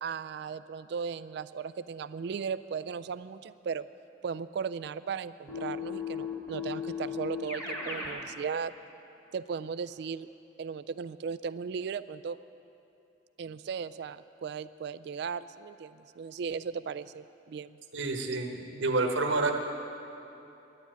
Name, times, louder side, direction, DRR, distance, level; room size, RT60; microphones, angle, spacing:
voice 1, 0.0-3.9 4.2-8.7 9.3-10.3 10.6-12.4 13.4-17.8, right 6 dB, 60° right, 14 dB, 0.3 m, -36 dB
Keyboard (musical), 5.5-8.2, left 6 dB, 15° left, 1.8 m, -36 dB
voice 2, 17.9-19.6, right 3 dB, 85° right, 3 dB, 1.2 m, -29 dB
11.0 x 9.6 x 9.1 m, 2.9 s
head